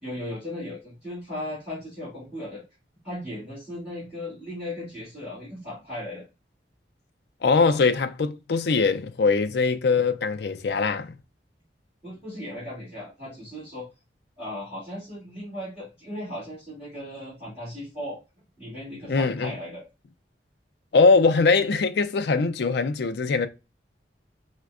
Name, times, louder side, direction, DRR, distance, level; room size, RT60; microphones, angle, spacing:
voice 1, 0.0-2.6 3.0-6.2 12.0-13.9 14.4-18.2 18.6-19.8, left 1 dB, 10° right, 1.9 m, -37 dB
voice 2, 7.4-11.2 19.1-19.5 20.9-23.5, left 4 dB, 65° left, 0.4 m, -22 dB
4.3 x 2.2 x 2.4 m
head